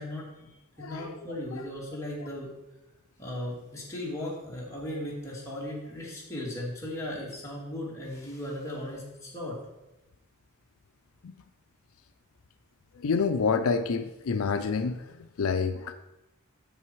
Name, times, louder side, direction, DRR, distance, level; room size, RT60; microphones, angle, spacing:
voice 1, 0.0-2.5 3.2-9.6, left 1 dB, 15° left, -4 dB, 2.5 m, -37 dB
voice 2, 0.8-1.1 1.5-1.6 11.2-11.3 12.9-15.9, left 5 dB, 80° left, 10 dB, 0.5 m, -28 dB
8.9 x 6.9 x 4.7 m, 1.0 s
head